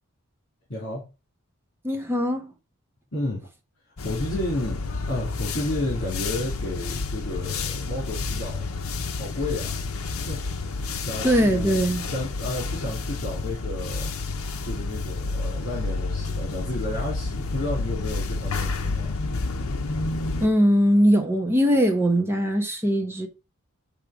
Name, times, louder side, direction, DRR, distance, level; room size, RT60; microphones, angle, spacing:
voice 1, 0.7-1.0 3.1-3.5 4.0-4.8 5.1-8.7 9.1-11.8 12.1-14.2 14.6-19.2, left 1 dB, 50° left, 3.0 m, -32 dB
voice 2, 1.8-2.5 11.2-12.1 20.4-23.3, equal, 10° right, 1.2 m, -21 dB
sound 1, 4.0-20.5, left 3 dB, 70° left, 0.8 m, -30 dB
8.5 x 3.4 x 5.0 m
head